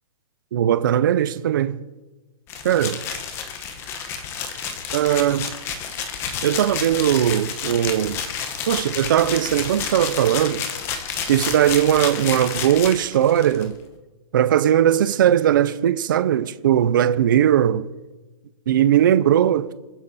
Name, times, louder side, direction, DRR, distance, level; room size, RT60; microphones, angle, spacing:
voice 1, 0.5-1.8 2.6-3.0 4.9-5.5 6.4-8.2 8.7-10.7 11.3-13.8 14.3-17.9 18.7-19.7, right 10 dB, 35° right, 0.5 m, -19 dB
bolsa de mini chips., 2.5-13.7, left 7 dB, 15° left, 0.9 m, -30 dB
28.0 x 10.0 x 4.1 m
hypercardioid pair, 175°, 18 cm